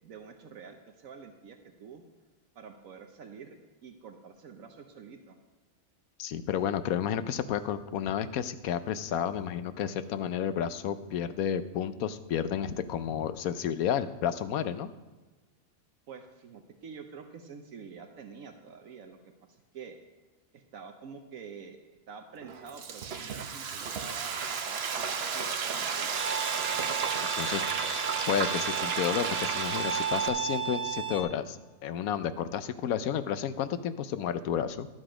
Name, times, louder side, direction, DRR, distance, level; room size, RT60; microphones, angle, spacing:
voice 1, 0.0-2.0 2.5-5.4 16.1-19.2 19.5-20.0 20.5-21.8 22.1-24.4 24.6-26.2, right 6 dB, 75° right, 5 dB, 1.2 m, -47 dB
voice 2, 6.2-14.9 27.4-27.6 28.3-31.6 31.8-34.9, left 9 dB, 85° left, 12 dB, 1.1 m, -31 dB
Frying (food), 22.4-30.3, right 6 dB, 55° right, 0.9 m, -33 dB
Bowed string instrument, 26.2-31.2, right 7 dB, 25° right, 0.8 m, -34 dB
12.0 x 7.8 x 5.0 m, 1.2 s
omnidirectional pair, 1.5 m